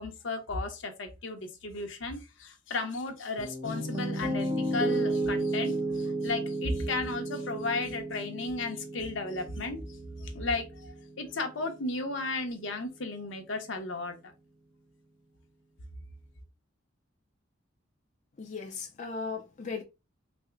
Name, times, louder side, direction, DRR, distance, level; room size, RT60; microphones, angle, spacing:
voice 1, 0.0-9.8 10.2-14.2, left 3 dB, 70° left, 0.8 m, -34 dB
Piano, 3.4-11.5, right 2 dB, 25° right, 1.0 m, -33 dB
voice 2, 18.4-19.8, left 5 dB, 40° left, 0.4 m, -37 dB
3.4 x 2.1 x 3.3 m
head